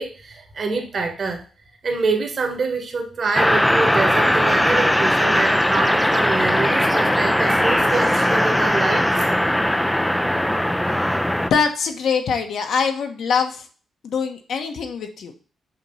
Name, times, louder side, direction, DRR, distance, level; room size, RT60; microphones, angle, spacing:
voice 1, 0.0-1.4 1.8-9.3, right 3 dB, 40° right, 3 dB, 1.6 m, -26 dB
sound 1, 3.3-11.5, equal, 5° left, 0.4 m, -19 dB
voice 2, 11.5-13.6 14.0-15.3, left 6 dB, 65° left, 5 dB, 1.0 m, -23 dB
7.8 x 3.0 x 5.5 m, 0.38 s
cardioid pair, 140°, 0 cm